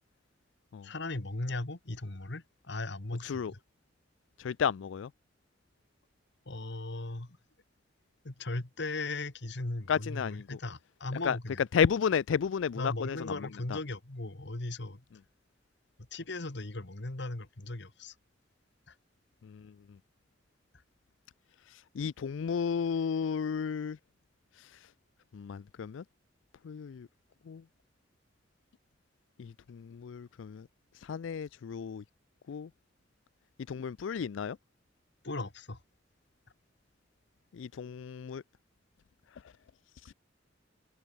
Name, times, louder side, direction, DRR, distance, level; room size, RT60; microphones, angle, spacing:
voice 1, 0.8-3.6 6.5-7.4 8.2-11.6 12.8-15.0 16.1-18.1 18.9-19.0 35.2-35.8, left 2 dB, 65° left, 1.8 m, -38 dB
voice 2, 4.4-5.1 9.9-10.6 11.2-11.4 11.7-13.8 19.4-19.7 21.7-24.0 25.3-26.0 26.6-27.1 27.5-27.6 29.4-30.7 31.0-32.0 32.5-32.7 33.7-34.6 37.5-38.4 40.1-40.2, left 7 dB, 85° left, 0.4 m, -33 dB
head